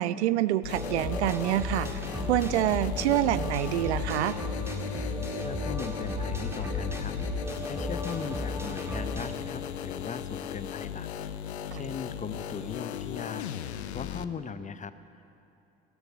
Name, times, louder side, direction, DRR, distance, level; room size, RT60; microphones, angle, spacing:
voice 1, 0.0-1.9 2.3-4.4 11.7-11.8, right 13 dB, 85° right, 16 dB, 0.5 m, -26 dB
sound 1, 0.6-14.2, left 10 dB, 90° left, 0.6 m, -36 dB
sound 2, 0.7-9.4, equal, 10° right, 1.8 m, -35 dB
voice 2, 5.4-7.2 7.6-11.1 11.4-15.3, left 6 dB, 25° left, 13 dB, 0.7 m, -39 dB
14.0 x 12.5 x 6.7 m, 2.7 s
hypercardioid pair, 65°, 32 cm